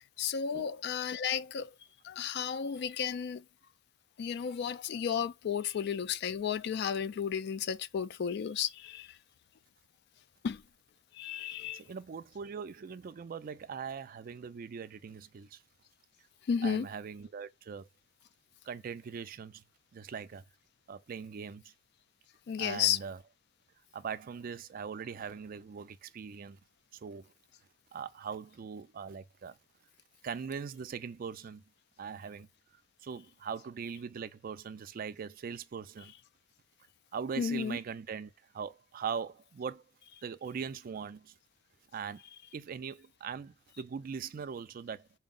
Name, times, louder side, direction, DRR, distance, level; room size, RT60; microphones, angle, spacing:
voice 1, 0.0-1.7 2.0-3.4 4.2-9.2 10.4-10.6 11.1-11.8 16.5-16.9 22.5-23.0 37.4-37.8, left 7 dB, 60° left, 0.3 m, -33 dB
voice 2, 11.7-15.6 16.6-17.9 18.6-19.6 19.9-20.4 20.9-21.7 22.6-23.2 23.9-26.6 26.9-27.3 27.9-29.6 30.2-31.6 32.0-32.5 33.0-36.1 37.1-39.8 40.2-41.3 41.9-42.2 42.5-45.2, right 6 dB, 50° right, 0.4 m, -41 dB
4.4 x 2.0 x 3.7 m
head